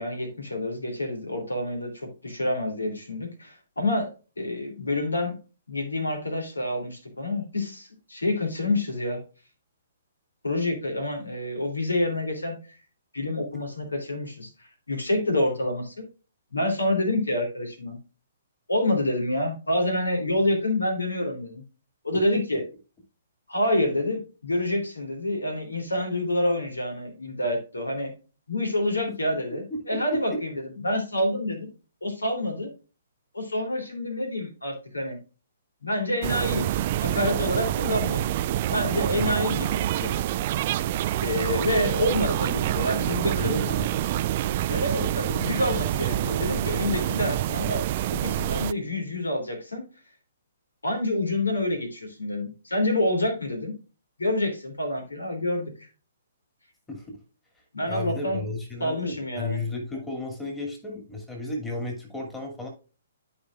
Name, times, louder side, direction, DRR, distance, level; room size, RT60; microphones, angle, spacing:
voice 1, 0.0-4.1 4.4-5.3 5.7-9.2 10.4-12.5 13.1-16.0 16.5-18.0 18.7-21.6 22.0-22.6 23.5-28.1 28.5-31.7 32.0-32.7 33.3-35.2 35.8-40.1 41.2-43.8 44.6-47.8 48.1-49.8 50.8-53.7 54.2-55.9 57.7-58.4 58.8-59.6, left 1 dB, 80° left, 3 dB, 3.0 m, -27 dB
voice 2, 29.5-30.6 39.0-39.5 43.3-43.9 44.2-44.3 56.9-57.1 57.9-62.7, left 2 dB, 5° left, 0 dB, 2.4 m, -34 dB
sound 1, 36.2-48.7, right 13 dB, 40° right, 0.3 m, -27 dB
13.0 x 5.1 x 2.4 m, 0.33 s
figure-of-eight pair, 125°, 0 cm